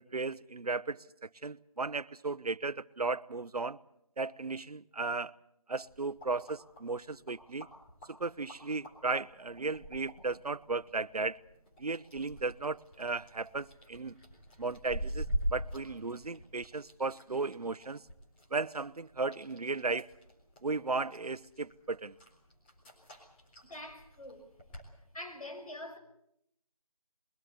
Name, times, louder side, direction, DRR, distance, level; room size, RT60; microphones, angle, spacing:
voice 1, 0.0-3.8 4.2-5.3 5.7-7.7 8.2-11.4 11.8-14.2 14.6-18.0 18.5-20.1 20.6-22.1, right 3 dB, 85° right, 0.9 m, -35 dB
sound 1, 5.8-24.9, equal, 15° left, 3.9 m, -44 dB
voice 2, 23.6-24.5 25.1-26.0, left 1 dB, 70° left, 6.5 m, -44 dB
22.5 x 19.5 x 8.1 m
figure-of-eight pair, 165°, 19 cm